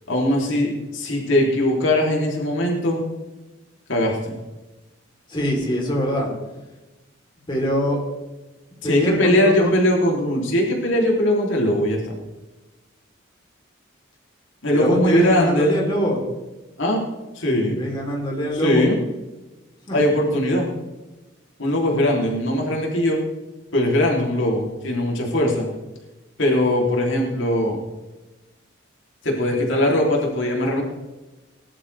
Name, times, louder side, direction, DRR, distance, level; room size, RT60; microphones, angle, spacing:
voice 1, 0.1-3.0 3.9-4.3 8.8-12.2 14.6-15.7 16.8-17.0 17.3-17.8 18.5-19.0 19.9-20.7 21.6-23.2 23.7-25.7 26.4-27.8 29.2-30.8, left 1 dB, 75° left, -1 dB, 3.2 m, -20 dB
voice 2, 5.3-6.3 7.5-8.0 8.8-9.7 14.7-16.2 17.7-18.8 19.9-20.0, equal, 25° left, -3 dB, 3.5 m, -23 dB
20.0 x 11.5 x 3.4 m, 1.1 s
head